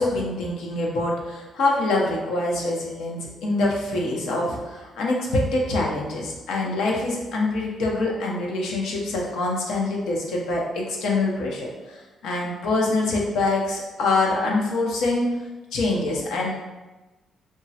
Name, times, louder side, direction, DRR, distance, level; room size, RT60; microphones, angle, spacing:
voice 1, 0.0-15.4 15.7-16.5, left 2 dB, 85° left, -2 dB, 0.6 m, -25 dB
3.4 x 2.0 x 2.7 m, 1.1 s
cardioid pair, 90°, 0 cm